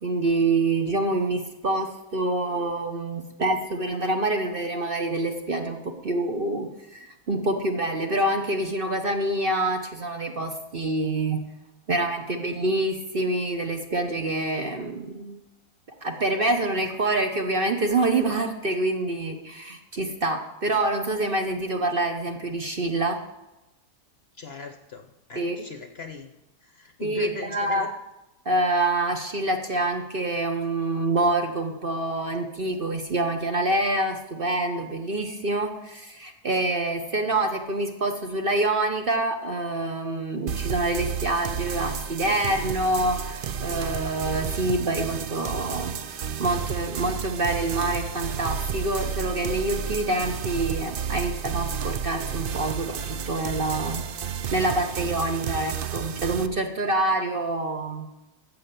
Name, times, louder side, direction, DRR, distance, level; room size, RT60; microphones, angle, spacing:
voice 1, 0.0-11.4 11.9-15.4 16.0-23.2 25.3-25.6 27.0-27.9 28.4-54.0 54.5-58.3, right 2 dB, 40° right, 5 dB, 1.0 m, -26 dB
voice 2, 24.4-26.3 26.6-27.9, left 4 dB, 50° left, 7 dB, 0.9 m, -39 dB
sound 1, 40.5-56.5, right 7 dB, 85° right, 0.4 m, -31 dB
13.5 x 7.8 x 6.9 m, 0.99 s
omnidirectional pair, 1.7 m